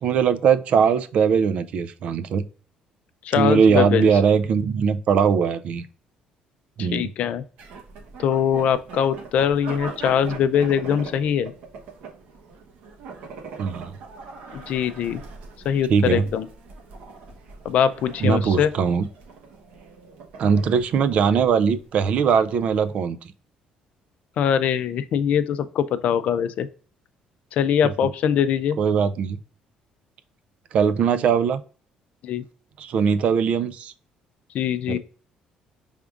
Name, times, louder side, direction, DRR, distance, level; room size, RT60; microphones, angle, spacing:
voice 1, 0.0-2.4 3.4-5.8 6.8-7.1 13.6-13.9 15.9-16.3 18.2-19.0 20.4-23.2 28.8-29.4 30.7-31.6 32.8-33.9 34.9-35.0, right 6 dB, 55° right, 11 dB, 0.4 m, -20 dB
voice 2, 3.2-4.1 6.8-7.4 8.2-11.5 14.5-15.2 15.6-16.5 17.6-18.7 24.4-26.7 27.5-28.8 32.2-32.4 34.5-35.0, left 8 dB, 60° left, 12 dB, 0.4 m, -22 dB
sound 1, 7.6-22.9, right 4 dB, 80° right, 1.0 m, -41 dB
5.0 x 3.5 x 2.4 m, 0.40 s
cardioid pair, 135°, 3 cm